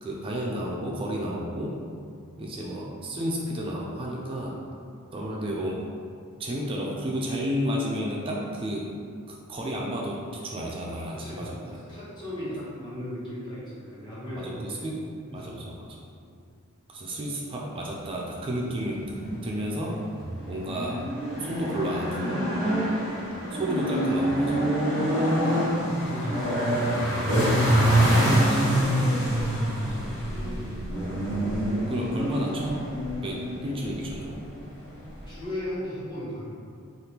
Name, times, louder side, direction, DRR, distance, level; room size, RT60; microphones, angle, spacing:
voice 1, 0.0-1.8 2.4-4.5 5.1-5.8 6.4-8.9 9.3-11.8 12.5-12.6 14.4-15.9 16.9-19.0 19.4-19.9 20.5-21.0 21.4-22.4 23.5-24.7 28.4-28.6 31.9-32.8 33.0-34.4, equal, 25° right, -3 dB, 0.3 m, -32 dB
voice 2, 11.1-14.9 15.2-15.7 16.2-16.4 25.7-30.7 35.3-36.6, left 1 dB, 20° left, -10 dB, 1.0 m, -38 dB
sound 1, 18.8-35.5, right 1 dB, 65° left, 1.2 m, -26 dB
3.3 x 2.4 x 2.9 m, 2.3 s
head